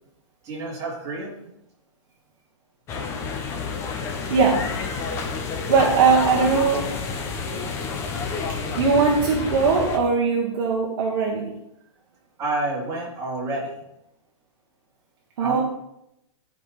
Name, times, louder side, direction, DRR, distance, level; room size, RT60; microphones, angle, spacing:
voice 1, 0.4-1.3 5.7-6.0 6.2-6.5 12.4-13.8 15.4-15.6, right 2 dB, 20° right, -6 dB, 3.4 m, -29 dB
sound 1, 2.9-10.0, left 5 dB, 15° left, 0.9 m, -29 dB
voice 2, 4.3-4.6 5.7-6.8 8.8-11.5 15.4-15.6, right 5 dB, 45° right, -1 dB, 1.5 m, -20 dB
13.5 x 5.3 x 4.1 m, 0.83 s
hypercardioid pair, 165°, 16 cm